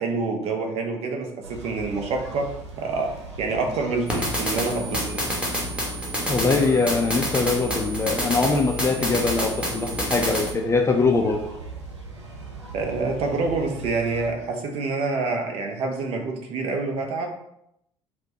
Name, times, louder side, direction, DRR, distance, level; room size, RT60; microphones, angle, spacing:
voice 1, 0.0-2.5 2.8-5.2 12.7-17.3, right 3 dB, 45° right, 3 dB, 0.7 m, -27 dB
sound 1, 1.4-14.3, right 3 dB, 80° right, 0.5 m, -40 dB
sound 2, 4.1-10.5, equal, 5° right, 1.1 m, -28 dB
voice 2, 6.3-11.4, left 3 dB, 20° left, 2 dB, 0.4 m, -22 dB
4.2 x 2.2 x 2.7 m, 0.78 s
figure-of-eight pair, 60°, 15 cm